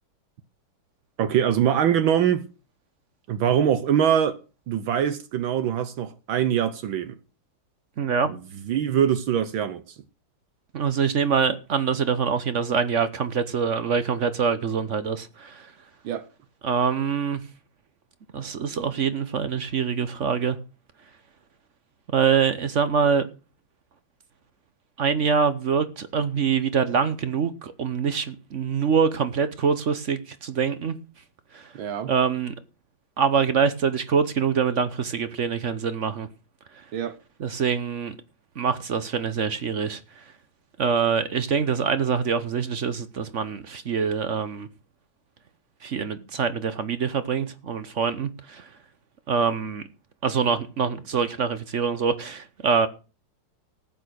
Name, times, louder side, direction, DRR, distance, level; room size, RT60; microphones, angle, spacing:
voice 1, 1.2-2.4 3.3-4.4 4.7-7.2 8.3-8.4 8.7-9.9 16.0-16.2 31.7-32.1 36.9-37.2, right 9 dB, 75° right, 1.7 m, -23 dB
voice 2, 8.0-8.3 10.7-15.7 16.6-17.4 18.3-20.6 22.1-23.3 25.0-31.0 31.5-31.7 32.1-32.5 33.2-36.3 37.4-38.2 38.6-40.2 40.8-44.7 45.8-48.7 49.3-49.8 50.2-52.9, right 6 dB, 50° right, 0.9 m, -24 dB
14.5 x 8.9 x 6.3 m
omnidirectional pair, 2.2 m